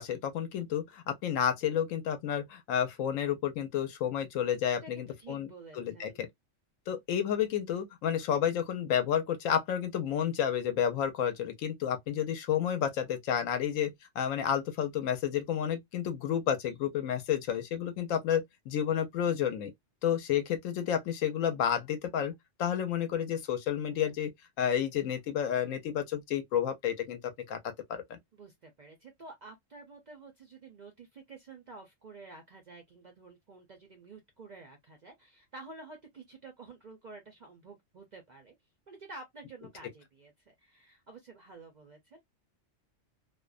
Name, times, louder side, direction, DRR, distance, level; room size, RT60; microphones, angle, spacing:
voice 1, 0.0-6.1 6.9-19.7 20.0-22.3 22.6-24.3 24.6-27.2 27.5-27.6 27.9-28.2, left 9 dB, 80° left, 1.0 m, -31 dB
voice 2, 4.8-6.3 28.3-38.5 38.9-42.2, right 3 dB, 55° right, 0.5 m, -50 dB
2.4 x 2.1 x 2.3 m
omnidirectional pair, 1.3 m